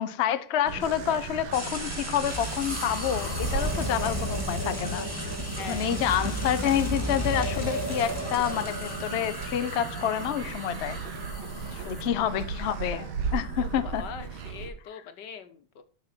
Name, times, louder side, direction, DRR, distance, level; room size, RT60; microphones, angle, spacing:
voice 1, 0.0-5.1 5.7-11.0 11.9-14.0, left 10 dB, 85° left, 0.5 m, -28 dB
sound 1, 0.6-14.7, right 5 dB, 75° right, 2.0 m, -37 dB
sound 2, 1.5-9.8, right 1 dB, 5° right, 2.2 m, -40 dB
sound 3, 2.3-12.1, equal, 10° left, 1.5 m, -34 dB
voice 2, 5.6-6.0 11.7-12.5 13.6-15.8, left 6 dB, 60° left, 1.6 m, -43 dB
12.5 x 6.0 x 4.4 m
omnidirectional pair, 2.3 m